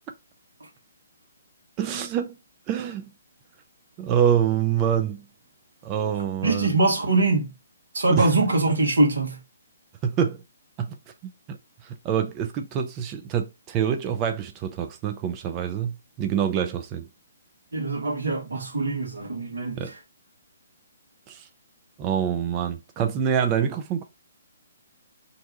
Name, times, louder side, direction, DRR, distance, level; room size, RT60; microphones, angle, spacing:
voice 1, 1.8-2.4 2.7-3.1 4.0-5.2 5.8-6.8 8.1-8.3 10.0-10.4 10.8-11.0 11.2-11.6 12.0-17.1 19.8-19.9 21.3-21.5 22.0-24.0, right 8 dB, 25° right, 0.4 m, -26 dB
voice 2, 6.4-7.5 7.9-9.4 17.7-19.8, right 2 dB, 65° right, 1.1 m, -23 dB
2.6 x 2.2 x 3.9 m
figure-of-eight pair, 130°, 0 cm